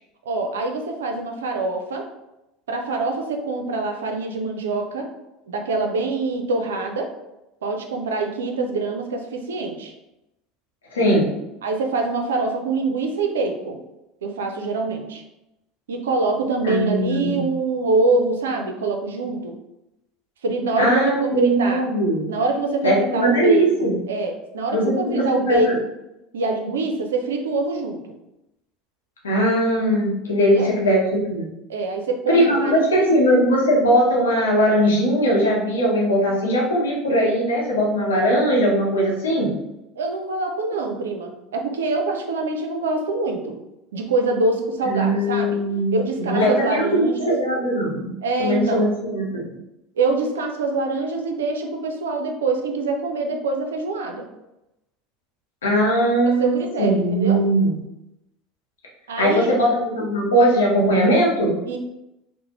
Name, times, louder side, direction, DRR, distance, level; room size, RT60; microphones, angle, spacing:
voice 1, 0.3-2.1 2.7-5.1 5.5-7.1 7.6-9.9 11.6-13.8 14.2-15.2 15.9-19.5 20.4-21.8 22.3-25.7 26.3-28.0 30.4-30.7 31.7-33.1 40.0-43.6 43.9-45.6 45.9-47.3 48.2-48.9 50.0-54.3 56.2-57.4 59.1-59.6 61.7-61.8, right 3 dB, 85° right, 4 dB, 0.4 m, -25 dB
voice 2, 10.9-11.3 16.6-17.5 20.8-22.3 22.8-24.0 24.7-25.8 29.2-31.0 31.3-31.5 32.3-39.5 44.8-48.1 48.4-49.4 55.6-57.8 59.2-61.6, equal, 90° left, -3 dB, 0.8 m, -20 dB
2.5 x 2.0 x 2.9 m, 0.91 s
hypercardioid pair, 80°, 0 cm